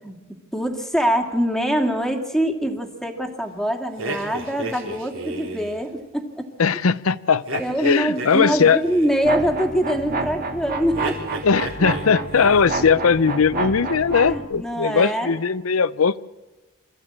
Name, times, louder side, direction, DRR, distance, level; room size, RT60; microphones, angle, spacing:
voice 1, 0.5-6.3 7.6-11.2 14.2-15.4, equal, ahead, 4 dB, 2.1 m, -24 dB
sound 1, 4.0-5.8 7.5-9.3 10.9-12.1 12.3-12.8, right 2 dB, 70° right, 3.7 m, -33 dB
voice 2, 6.6-8.8 11.4-16.2, left 5 dB, 85° left, 18 dB, 0.6 m, -19 dB
sound 2, 9.2-14.4, right 3 dB, 45° right, 2.7 m, -29 dB
26.0 x 14.0 x 8.7 m, 1.2 s
head